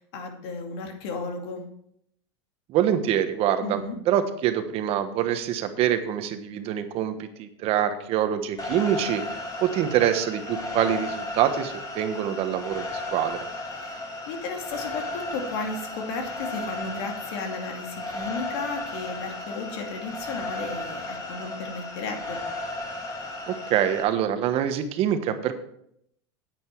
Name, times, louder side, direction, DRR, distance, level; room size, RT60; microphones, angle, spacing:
voice 1, 0.0-1.6 3.6-4.0 13.8-22.4, left 3 dB, 70° left, 3 dB, 2.5 m, -34 dB
voice 2, 2.7-9.2 9.6-13.5 23.5-25.5, right 10 dB, 45° right, 9 dB, 1.2 m, -25 dB
sound 1, 8.6-24.0, left 2 dB, 25° left, 3.2 m, -35 dB
9.6 x 9.2 x 4.6 m, 0.71 s
supercardioid pair, 120°, 14 cm